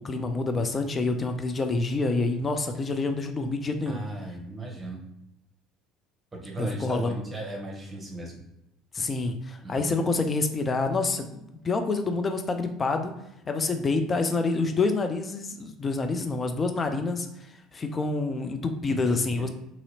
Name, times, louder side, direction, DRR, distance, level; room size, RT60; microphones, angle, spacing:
voice 1, 0.0-4.0 6.6-7.2 8.9-13.1 13.5-19.5, left 3 dB, 30° left, 6 dB, 0.4 m, -27 dB
voice 2, 3.8-5.0 6.3-8.4 9.6-9.9 18.9-19.5, right 2 dB, 20° right, 0 dB, 0.9 m, -37 dB
2.9 x 2.7 x 2.7 m, 0.83 s
figure-of-eight pair, 65°, 0 cm